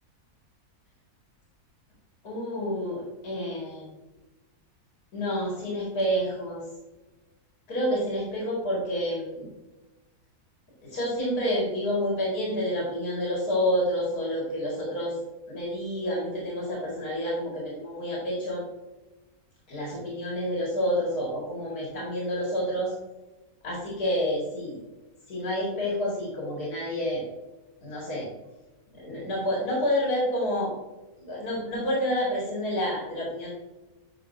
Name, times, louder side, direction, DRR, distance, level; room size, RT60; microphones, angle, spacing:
voice 1, 2.2-3.9 5.1-6.6 7.7-9.5 10.8-15.1 15.5-18.6 19.7-22.9 23.6-24.8 25.3-27.2 27.8-28.3 29.0-30.8 31.2-33.5, equal, 90° left, -4 dB, 2.6 m, -29 dB
9.3 x 5.7 x 2.7 m, 1.1 s
omnidirectional pair, 1.6 m